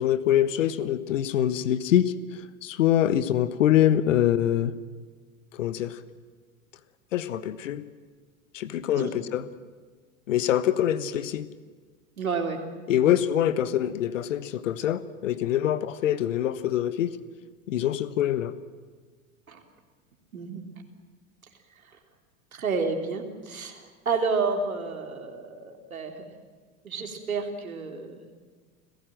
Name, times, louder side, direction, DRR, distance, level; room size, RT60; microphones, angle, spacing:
voice 1, 0.0-4.7 5.5-6.0 7.1-7.8 8.5-9.4 10.3-11.5 12.9-17.2 17.7-18.5, left 11 dB, 65° left, 14 dB, 1.4 m, -24 dB
voice 2, 12.2-12.6 12.9-13.1 19.5-19.6 20.3-20.6 21.8-22.0 22.5-26.2 26.8-28.3, right 4 dB, 75° right, 3 dB, 3.4 m, -30 dB
29.5 x 17.0 x 7.7 m, 1.5 s
figure-of-eight pair, 85°, 42 cm